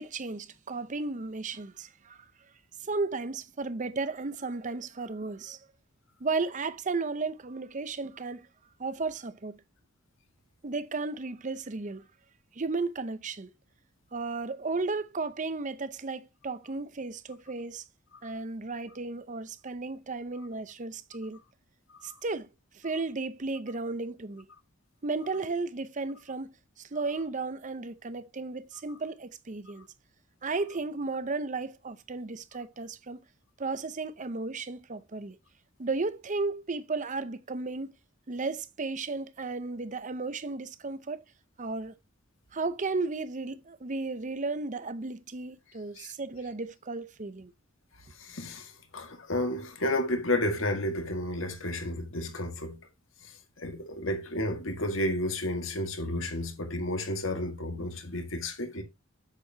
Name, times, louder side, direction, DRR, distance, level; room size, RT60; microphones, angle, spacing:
voice 1, 0.0-2.2 2.8-5.6 6.2-8.5 8.8-9.6 10.6-12.1 12.5-13.5 14.1-17.8 18.2-21.4 22.0-22.5 22.7-24.4 25.0-29.9 30.4-33.2 33.6-35.4 35.8-37.9 38.3-41.2 41.6-41.9 42.5-47.5, right 3 dB, 40° right, 0.7 m, -34 dB
voice 2, 48.2-52.8 53.2-58.8, left 1 dB, 75° left, 1.8 m, -32 dB
8.2 x 7.6 x 2.8 m
head